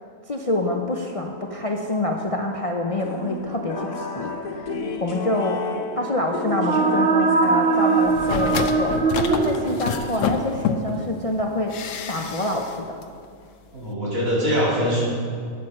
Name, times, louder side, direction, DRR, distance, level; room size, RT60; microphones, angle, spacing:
voice 1, 0.3-5.7 6.0-9.0 9.3-11.7 12.1-13.0, left 2 dB, 40° left, 1 dB, 0.5 m, -26 dB
sound 1, 3.0-10.4, left 3 dB, 85° left, 1.5 m, -33 dB
sound 2, 6.3-10.2, right 4 dB, 50° right, 1.0 m, -21 dB
sound 3, 8.0-11.1 11.7-12.8 13.0-13.1, left 6 dB, 70° left, 1.1 m, -28 dB
voice 2, 13.7-15.0, equal, 75° right, -7 dB, 3.7 m, -22 dB
9.4 x 8.9 x 6.4 m, 2.3 s
omnidirectional pair, 1.4 m